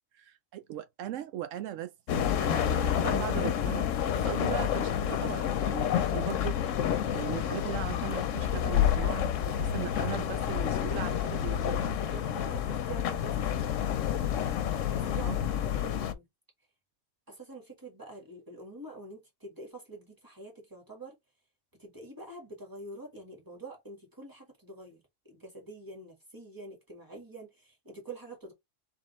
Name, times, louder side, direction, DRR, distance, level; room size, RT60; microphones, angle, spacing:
voice 1, 0.2-3.9 4.1-6.8 7.1-11.8 15.2-15.4, right 11 dB, 80° right, 0.9 m, -38 dB
sound 1, 2.1-16.1, left 9 dB, 85° left, 1.0 m, -29 dB
voice 2, 2.3-2.9 4.2-4.5 10.0-10.3 12.0-14.5 14.9-16.3 17.3-21.2 21.8-25.0 25.3-28.5, right 2 dB, 15° right, 1.8 m, -46 dB
3.6 x 3.6 x 3.1 m
omnidirectional pair, 1.3 m